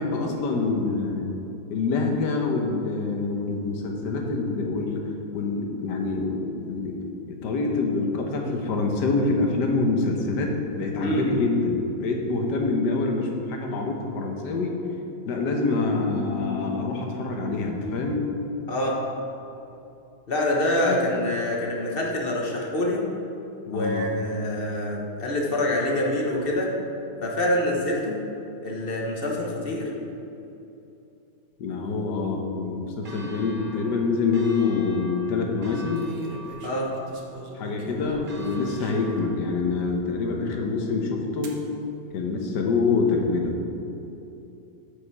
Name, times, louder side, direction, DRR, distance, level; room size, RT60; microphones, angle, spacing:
voice 1, 0.0-1.3 1.7-5.1 5.3-7.0 7.3-14.8 15.3-18.2 20.8-21.1 23.7-24.1 31.6-36.0 37.5-41.6 42.1-43.5, left 3 dB, 75° left, 2 dB, 1.6 m, -26 dB
sound 1, 16.2-19.1, left 6 dB, ahead, 0.4 m, -38 dB
voice 2, 20.3-23.0 23.7-26.7 27.2-28.2 28.6-29.9 36.6-36.9, left 1 dB, 40° left, -2 dB, 1.0 m, -26 dB
Church bell, 33.0-39.5, right 2 dB, 35° right, 1.0 m, -45 dB
sound 2, 34.3-34.7 36.0-39.3 39.9-40.0 41.4-41.6 42.5-43.0, right 2 dB, 60° right, 1.3 m, -43 dB
8.8 x 5.2 x 4.6 m, 2.8 s
omnidirectional pair, 1.8 m